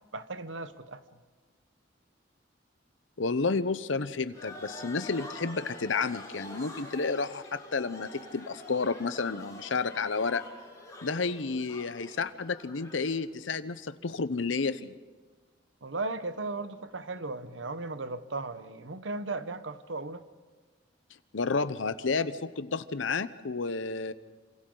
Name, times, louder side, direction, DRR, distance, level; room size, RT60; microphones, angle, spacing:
voice 1, 0.1-1.0 15.8-20.2, right 3 dB, 75° right, 11 dB, 1.0 m, -36 dB
voice 2, 3.2-10.4 11.0-14.9 21.3-24.1, left 4 dB, 80° left, 13 dB, 0.8 m, -31 dB
sound 1, 4.3-13.1, left 1 dB, 20° left, 6.9 m, -46 dB
27.5 x 26.5 x 3.9 m, 1.4 s
head